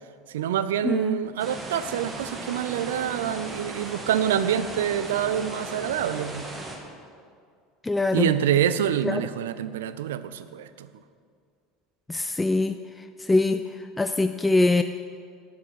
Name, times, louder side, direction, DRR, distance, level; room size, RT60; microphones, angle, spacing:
voice 1, 0.3-6.5 8.1-10.9, right 10 dB, 70° right, 14 dB, 0.4 m, -26 dB
voice 2, 0.8-1.3 7.8-8.3 9.0-9.2 12.1-12.8 13.2-13.6 14.0-14.8, left 2 dB, 10° left, 9 dB, 0.3 m, -23 dB
sound 1, 1.4-6.8, right 2 dB, 25° right, 1.7 m, -37 dB
12.0 x 8.3 x 4.8 m, 2.2 s
figure-of-eight pair, 70°, 0 cm